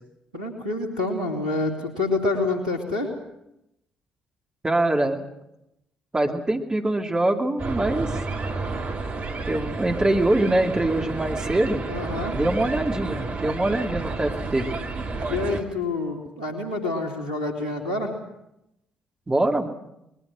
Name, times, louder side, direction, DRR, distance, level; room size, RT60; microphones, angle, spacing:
voice 1, 0.3-3.1 11.9-12.3 15.2-18.1, left 2 dB, 90° right, 0 dB, 2.6 m, -27 dB
voice 2, 4.6-5.2 6.1-8.1 9.5-11.8 12.3-14.7 19.3-19.7, right 1 dB, 20° right, 2 dB, 2.7 m, -23 dB
sound 1, 7.6-15.6, right 3 dB, 50° right, 2.3 m, -31 dB
25.5 x 21.0 x 6.3 m, 0.85 s
figure-of-eight pair, 40°, 4 cm